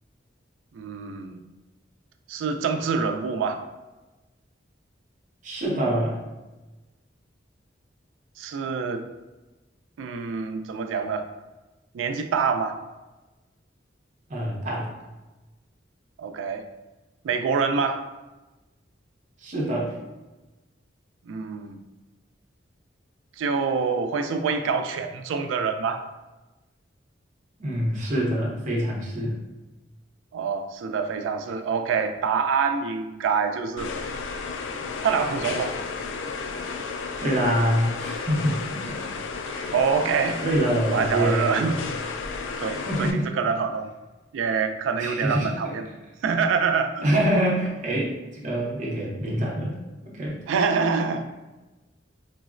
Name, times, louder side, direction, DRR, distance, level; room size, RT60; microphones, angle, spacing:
voice 1, 0.7-1.4 2.3-3.6 8.4-9.0 10.0-11.3 11.9-12.8 16.2-16.6 17.2-18.1 21.3-21.8 23.4-26.0 30.3-33.9 35.0-35.8 39.7-40.4 40.9-41.8 42.6-43.9 44.3-45.8 46.2-47.0 50.5-51.3, right 5 dB, 90° right, 8 dB, 0.3 m, -26 dB
voice 2, 5.4-6.2 14.3-14.9 19.4-19.9 27.6-29.4 37.2-39.1 39.4-39.8 40.4-41.8 42.7-43.3 45.0-45.7 47.0-49.7 50.1-50.4, equal, 45° right, -3 dB, 0.7 m, -25 dB
sound 1, 33.8-43.1, left 4 dB, 80° left, 0.3 m, -33 dB
3.8 x 2.1 x 2.4 m, 1.1 s
head